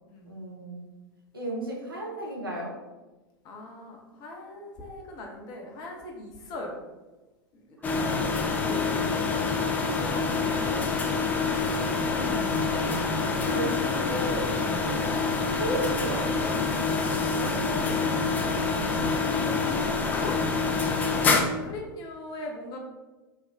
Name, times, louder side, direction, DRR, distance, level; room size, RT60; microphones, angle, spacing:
voice 1, 0.3-0.9 1.3-2.8 7.8-9.4 11.9-12.9 13.4-14.6 15.6-16.6, right 1 dB, 80° right, -3 dB, 0.9 m, -35 dB
voice 2, 3.4-6.8 7.5-7.8 8.2-8.3 8.6-11.2 15.1-15.2 17.4-18.1 18.9-20.4 20.8-22.8, left 2 dB, 35° left, 0 dB, 0.7 m, -40 dB
sound 1, 7.8-21.4, left 4 dB, 15° left, 0.3 m, -26 dB
3.4 x 2.2 x 3.4 m, 1.2 s
figure-of-eight pair, 90°, 12 cm